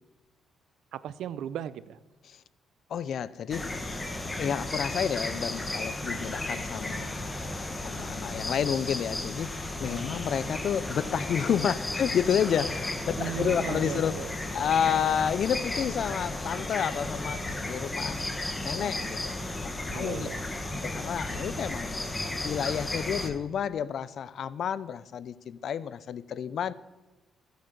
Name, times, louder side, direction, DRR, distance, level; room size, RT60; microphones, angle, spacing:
voice 1, 0.9-2.0 6.1-6.4 9.9-10.2 13.2-14.3 19.9-20.4, right 10 dB, 80° right, 17 dB, 0.6 m, -37 dB
voice 2, 2.9-3.7 4.4-7.3 7.8-14.1 14.5-18.2 18.6-20.3 20.8-22.0 22.4-26.7, left 8 dB, 65° left, 17 dB, 0.6 m, -30 dB
sound 1, 3.5-23.3, left 2 dB, 20° left, 1.7 m, -34 dB
14.5 x 9.2 x 6.8 m, 1.1 s
cardioid pair, 90°, 0 cm